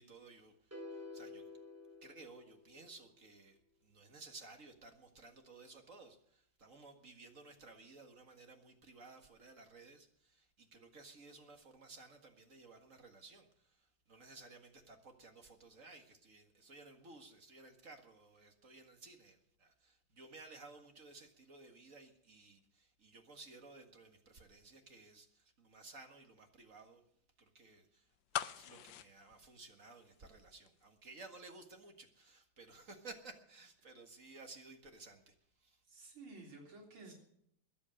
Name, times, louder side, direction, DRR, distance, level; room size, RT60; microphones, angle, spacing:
voice 1, 0.0-1.5 2.0-27.0 27.4-35.8, right 3 dB, 40° right, 5 dB, 2.0 m, -56 dB
sound 1, 0.7-3.0, left 3 dB, 5° right, 2.9 m, -51 dB
sound 2, 28.3-30.4 30.7-30.8, left 12 dB, 70° left, 1.4 m, -42 dB
voice 2, 35.9-37.1, right 3 dB, 90° right, -1 dB, 4.5 m, -53 dB
21.5 x 8.5 x 6.4 m, 0.70 s
omnidirectional pair, 2.2 m